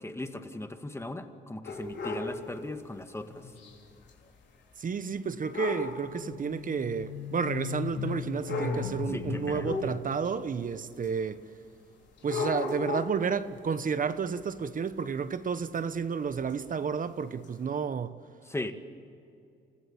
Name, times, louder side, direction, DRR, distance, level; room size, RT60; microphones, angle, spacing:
voice 1, 0.0-3.5 9.1-9.9 18.5-18.7, left 2 dB, 15° left, 1.9 m, -38 dB
sound 1, 1.6-2.4 3.6-3.7 4.1-4.2 5.5-6.0 7.0-7.1 8.1-8.2 8.5-9.0 9.6-10.3 11.0-11.1 12.2-13.3 15.7-15.8 16.5-16.6 17.4-17.5, left 3 dB, 65° left, 4.2 m, -34 dB
sound 2, 3.3-3.7 6.0-10.0, left 5 dB, 90° left, 2.3 m, -37 dB
voice 2, 4.8-11.4 12.2-18.2, right 6 dB, 45° right, 1.1 m, -31 dB
29.0 x 16.0 x 8.8 m
cardioid pair, 90°, 20 cm